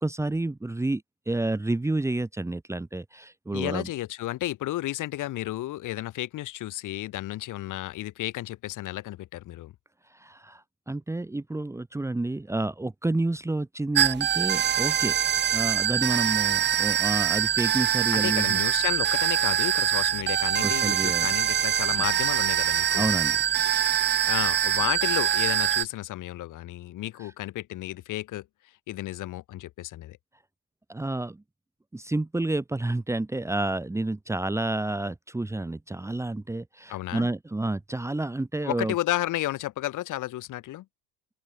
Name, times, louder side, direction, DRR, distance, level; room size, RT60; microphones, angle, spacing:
voice 1, 0.0-3.9 10.1-15.2 15.5-18.6 20.6-21.3 22.9-23.4 27.2-27.3 30.9-31.4 31.9-38.9, right 2 dB, 5° right, 2.5 m, -29 dB
voice 2, 3.5-9.7 18.1-23.1 24.3-28.4 28.9-30.2 36.9-37.3 38.6-40.8, left 15 dB, 40° left, 4.5 m, -32 dB
sound 1, 13.9-25.8, right 10 dB, 25° right, 1.0 m, -24 dB
open air
supercardioid pair, 120°, 45 cm